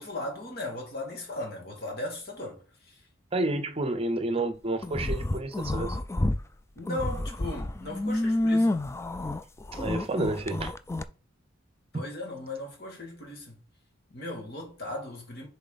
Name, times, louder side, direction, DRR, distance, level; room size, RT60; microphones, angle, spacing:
voice 1, 0.0-3.0 6.8-8.8 11.9-13.6 14.1-15.5, left 1 dB, 55° left, 2.3 m, -37 dB
voice 2, 3.3-6.0 9.7-10.7 11.9-12.0, right 2 dB, 30° right, 0.7 m, -30 dB
sound 1, 4.8-6.4 6.8-11.0, left 1 dB, 15° left, 0.3 m, -29 dB
7.0 x 4.2 x 4.1 m
head